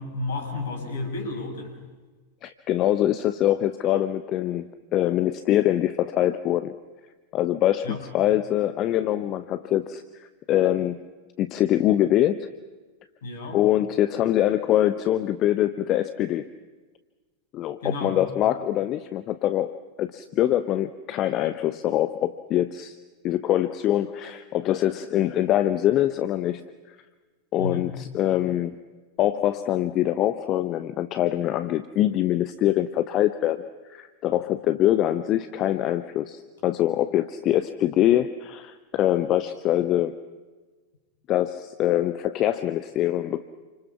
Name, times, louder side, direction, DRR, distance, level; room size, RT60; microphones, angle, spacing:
voice 1, 0.0-1.8 7.8-8.0 13.2-13.6 17.8-18.2 27.6-27.9, left 2 dB, 60° left, 4 dB, 6.3 m, -31 dB
voice 2, 2.4-6.7 7.3-10.0 10.5-11.0 11.4-12.5 13.5-16.5 17.5-22.9 23.2-26.9 27.5-28.8 29.2-40.2 41.3-43.4, left 12 dB, 35° left, 12 dB, 0.9 m, -24 dB
29.0 x 26.0 x 5.9 m, 1.3 s
figure-of-eight pair, 90°, 0 cm